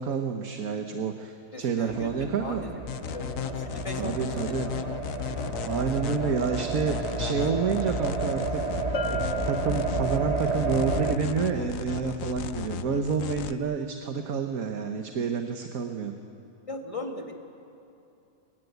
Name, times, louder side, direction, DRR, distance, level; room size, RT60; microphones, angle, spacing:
voice 1, 0.0-2.6 4.0-4.8 5.4-9.2 9.4-16.2, right 6 dB, 70° right, 5 dB, 1.6 m, -29 dB
voice 2, 1.5-5.1 16.7-17.5, left 1 dB, 20° left, 2 dB, 2.2 m, -39 dB
sound 1, 1.9-11.2, right 3 dB, 25° right, 1.4 m, -31 dB
sound 2, 2.9-13.5, left 10 dB, 65° left, 1.1 m, -35 dB
Bell, 8.9-10.5, left 3 dB, 50° left, 1.5 m, -36 dB
24.0 x 21.0 x 9.4 m, 2.8 s
omnidirectional pair, 1.6 m